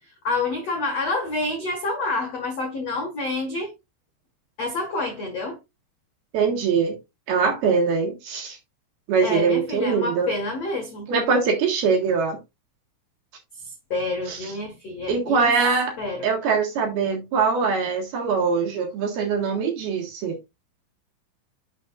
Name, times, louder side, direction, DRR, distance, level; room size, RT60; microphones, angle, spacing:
voice 1, 0.2-3.7 4.6-5.6 9.2-11.1 13.5-15.5 16.0-16.3, left 2 dB, 60° left, 1.7 m, -28 dB
voice 2, 6.3-7.0 7.3-8.6 9.1-10.3 11.1-12.4 14.3-14.4 15.1-15.9 16.2-20.4, right 5 dB, 60° right, 3.2 m, -22 dB
10.5 x 6.9 x 2.5 m
omnidirectional pair, 5.7 m